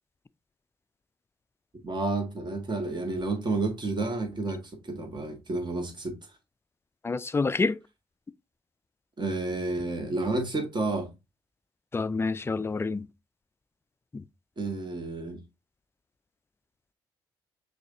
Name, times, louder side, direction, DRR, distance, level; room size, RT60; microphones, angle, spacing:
voice 1, 1.8-6.1 9.2-11.1 14.6-15.4, right 2 dB, 35° right, 1.5 m, -30 dB
voice 2, 7.0-7.8 11.9-13.1 14.1-14.2, left 4 dB, 20° left, 0.4 m, -28 dB
6.2 x 2.7 x 2.6 m
hypercardioid pair, 45°, 13 cm